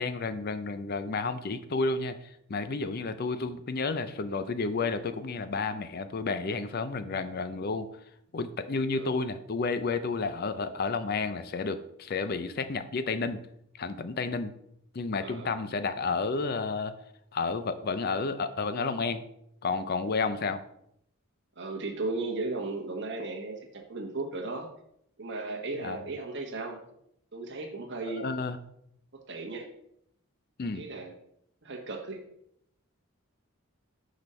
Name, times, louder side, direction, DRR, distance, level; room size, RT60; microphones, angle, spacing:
voice 1, 0.0-7.9 8.3-13.4 13.8-14.5 14.9-16.9 17.3-19.2 19.6-20.6 25.8-26.0 28.1-28.6 30.6-30.9, left 4 dB, 45° left, 11 dB, 0.5 m, -31 dB
voice 2, 15.2-15.5 21.6-24.7 25.2-26.8 27.3-28.3 29.1-29.7 30.7-31.1 31.6-32.2, right 3 dB, 55° right, 1 dB, 1.3 m, -36 dB
6.1 x 5.1 x 4.2 m, 0.73 s
head